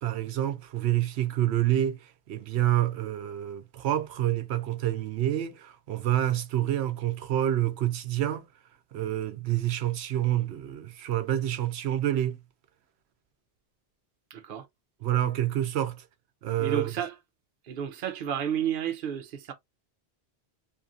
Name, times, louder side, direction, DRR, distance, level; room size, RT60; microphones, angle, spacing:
voice 1, 0.0-8.5 8.9-12.4 15.0-16.0 16.4-16.9, right 12 dB, 90° right, 0.9 m, -28 dB
voice 2, 14.3-14.7 16.6-17.2 17.6-19.5, right 9 dB, 60° right, 0.8 m, -31 dB
2.7 x 2.4 x 2.6 m
omnidirectional pair, 1.1 m